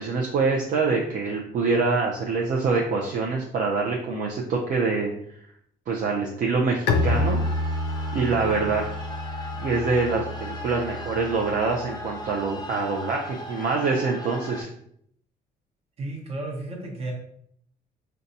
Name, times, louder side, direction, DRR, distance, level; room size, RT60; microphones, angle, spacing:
voice 1, 0.0-5.1 5.9-7.4 8.1-8.8 9.6-14.7, right 4 dB, 55° right, -1 dB, 0.5 m, -25 dB
Bowed string instrument, 6.9-12.5, left 2 dB, 90° left, 0.4 m, -29 dB
sound 1, 6.9-14.6, left 1 dB, 25° left, 0.6 m, -38 dB
voice 2, 16.0-17.1, right 2 dB, 40° right, 1 dB, 0.9 m, -33 dB
3.9 x 2.3 x 2.6 m, 0.67 s
cardioid pair, 110°, 16 cm